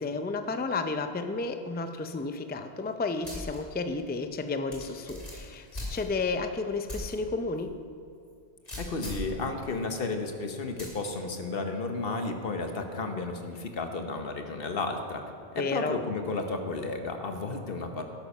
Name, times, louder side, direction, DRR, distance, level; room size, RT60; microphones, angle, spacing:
voice 1, 0.0-7.7 15.6-16.0, left 3 dB, 15° left, 8 dB, 0.3 m, -32 dB
sound 1, 3.2-3.6 4.0-4.1 4.7-6.4 6.9-7.1 7.6-7.7 8.7-9.3 10.8-11.1, left 1 dB, 35° left, 2.8 m, -38 dB
voice 2, 8.8-15.2 15.5-18.0, left 3 dB, 60° left, 5 dB, 1.2 m, -33 dB
12.0 x 9.4 x 5.5 m, 2.4 s
omnidirectional pair, 1.1 m